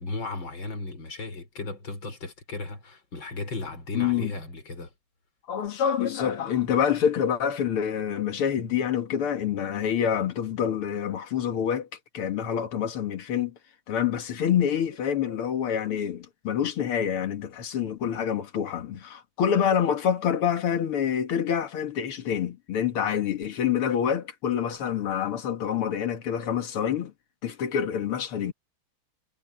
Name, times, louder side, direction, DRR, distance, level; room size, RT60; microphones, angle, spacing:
voice 1, 0.0-4.9, left 3 dB, 60° left, 6.1 m, -35 dB
voice 2, 3.9-4.3 5.5-11.9 12.1-13.5 13.9-27.1 27.4-28.5, left 8 dB, 85° left, 2.5 m, -27 dB
omnidirectional pair, 2.4 m